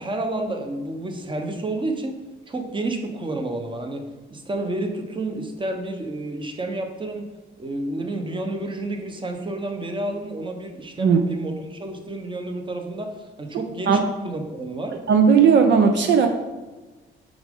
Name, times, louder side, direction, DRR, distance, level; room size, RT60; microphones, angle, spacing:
voice 1, 0.0-2.2 2.5-7.3 7.6-15.0, right 2 dB, 25° right, 5 dB, 1.1 m, -30 dB
voice 2, 15.1-16.3, right 6 dB, 65° right, 5 dB, 0.7 m, -16 dB
7.0 x 5.1 x 3.7 m, 1.2 s
cardioid pair, 90°, 20 cm